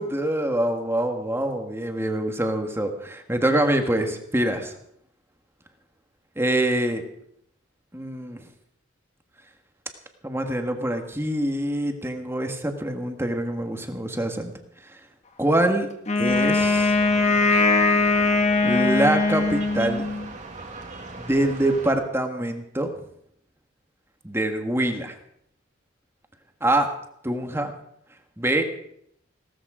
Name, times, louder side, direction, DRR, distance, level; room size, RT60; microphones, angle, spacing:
voice 1, 0.0-4.7 6.3-7.0 7.9-8.5 10.2-14.5 14.8-15.0 15.4-15.9 16.1-17.0 18.6-20.1 21.2-22.9 24.2-25.1 26.6-26.9 27.2-27.7 28.4-28.6, right 1 dB, 10° right, 5 dB, 1.6 m, -25 dB
Wind instrument woodwind instrument, 16.1-20.3, left 3 dB, 35° left, 1.7 m, -21 dB
sound 1, 16.3-21.9, right 3 dB, 40° right, 2.1 m, -39 dB
17.0 x 14.0 x 5.0 m, 0.74 s
head